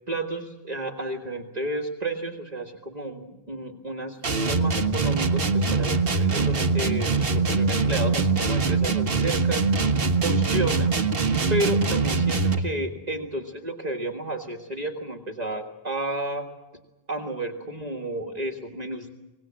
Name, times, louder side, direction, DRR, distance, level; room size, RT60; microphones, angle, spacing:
voice 1, 0.1-9.6 10.2-11.0 11.5-16.5 17.1-19.1, right 1 dB, 40° right, 1 dB, 2.0 m, -31 dB
sound 1, 4.2-12.7, right 4 dB, 65° right, 1.6 m, -23 dB
24.5 x 19.5 x 7.6 m, 1.1 s
omnidirectional pair, 1.0 m